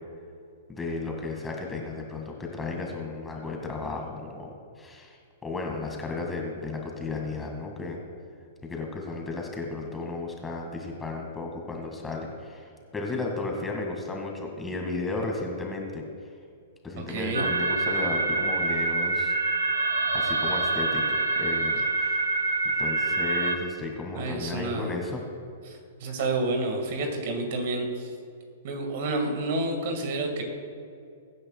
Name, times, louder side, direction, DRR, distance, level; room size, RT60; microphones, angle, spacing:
voice 1, 0.7-8.0 8.6-16.0 16.8-19.4 20.1-21.0 21.4-22.2 22.8-25.2, left 3 dB, 10° left, 1 dB, 2.1 m, -34 dB
voice 2, 17.1-17.4 24.1-24.9 25.7-28.2 28.6-30.4, right 2 dB, 50° right, 4 dB, 1.9 m, -29 dB
sound 1, 17.3-23.6, right 2 dB, 75° right, 0.9 m, -26 dB
22.5 x 10.0 x 2.4 m, 2.4 s
figure-of-eight pair, 110°, 0 cm